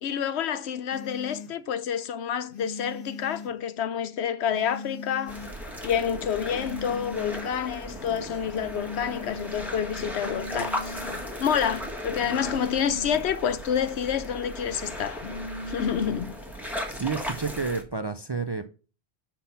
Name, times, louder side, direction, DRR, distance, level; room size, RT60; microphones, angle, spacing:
voice 1, 0.0-5.4 5.8-11.0 11.4-15.2 15.7-16.4, left 8 dB, 85° left, 1.0 m, -28 dB
sound 1, 0.9-1.5 2.5-3.5 4.5-5.5 6.5-7.5 8.5-9.5 10.2-11.2 12.2-13.2 15.2-16.3, left 3 dB, 55° left, 1.5 m, -39 dB
sound 2, 5.3-17.8, equal, ahead, 1.5 m, -37 dB
voice 2, 16.9-18.7, right 4 dB, 40° right, 0.4 m, -30 dB
5.9 x 5.8 x 6.8 m
omnidirectional pair, 1.1 m